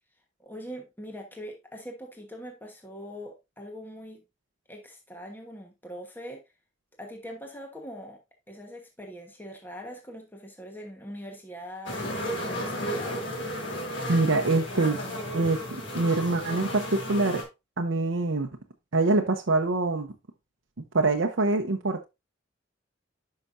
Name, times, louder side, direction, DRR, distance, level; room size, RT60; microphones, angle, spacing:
voice 1, 0.4-4.2 4.7-6.4 7.0-8.2 8.5-13.2, equal, 10° left, 1.2 m, -42 dB
sound 1, 11.9-17.4, equal, 75° left, 3.1 m, -33 dB
voice 2, 14.1-15.0 15.3-17.4 17.8-18.5 18.9-20.1 20.9-22.0, right 3 dB, 90° right, 0.8 m, -25 dB
10.0 x 5.8 x 2.6 m
head